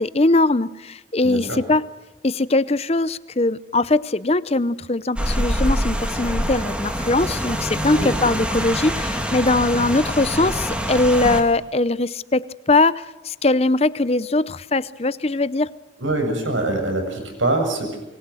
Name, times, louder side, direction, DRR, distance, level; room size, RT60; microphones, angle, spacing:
voice 1, 0.0-1.9 2.2-15.7, left 2 dB, 30° left, 17 dB, 0.7 m, -21 dB
voice 2, 1.2-1.6 7.9-8.1 16.0-18.0, right 2 dB, 85° right, 5 dB, 7.5 m, -24 dB
Rain, 5.2-11.4, equal, 5° right, 2.3 m, -25 dB
26.0 x 23.5 x 6.3 m, 1.0 s
head